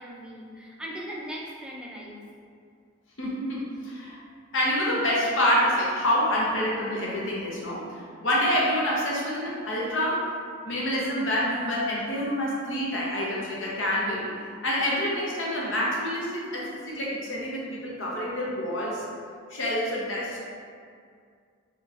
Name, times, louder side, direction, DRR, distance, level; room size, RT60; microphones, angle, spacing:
voice 1, 0.0-2.2, equal, 5° right, -4 dB, 0.4 m, -39 dB
voice 2, 3.2-4.2 4.5-7.8 8.2-10.2 10.7-14.3 14.6-19.0 19.5-20.4, equal, 65° left, -5 dB, 0.8 m, -27 dB
4.2 x 3.0 x 2.5 m, 2.2 s
head